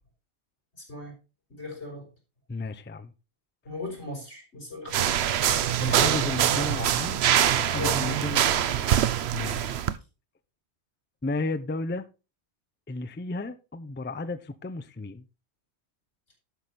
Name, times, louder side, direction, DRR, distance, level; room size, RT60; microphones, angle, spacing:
voice 1, 0.8-1.1 1.5-2.1 3.6-5.7 7.8-8.9, left 2 dB, 85° left, 4.6 m, -39 dB
voice 2, 2.5-3.1 5.8-7.2 7.5-8.5 9.3-9.8 11.2-12.1 12.9-15.2, left 2 dB, 15° left, 0.4 m, -33 dB
sound 1, 4.9-9.9, right 10 dB, 70° right, 0.9 m, -24 dB
11.5 x 6.2 x 4.1 m
omnidirectional pair, 1.1 m